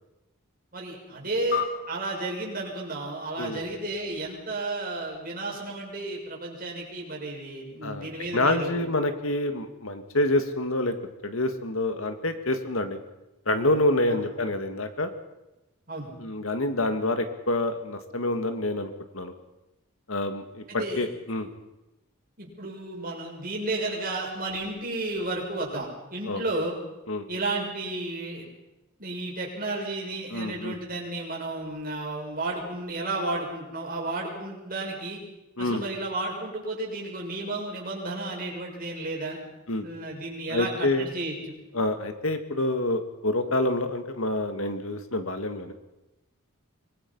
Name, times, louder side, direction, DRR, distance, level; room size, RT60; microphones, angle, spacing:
voice 1, 0.7-8.8 14.1-14.2 15.9-16.1 20.7-21.0 22.4-26.8 27.3-28.4 29.0-35.2 35.6-39.4 39.8-41.6, right 2 dB, 40° right, -2 dB, 6.7 m, -32 dB
sound 1, 1.5-4.2, left 9 dB, 50° left, 1.4 m, -36 dB
voice 2, 8.3-10.9 11.2-13.0 13.5-15.1 16.2-19.3 20.1-21.5 26.3-26.4 27.1-27.3 30.3-30.8 35.6-35.8 39.7-39.8 40.5-41.1 41.7-45.7, left 1 dB, 75° left, 7 dB, 2.0 m, -27 dB
24.5 x 21.5 x 5.6 m, 0.97 s
head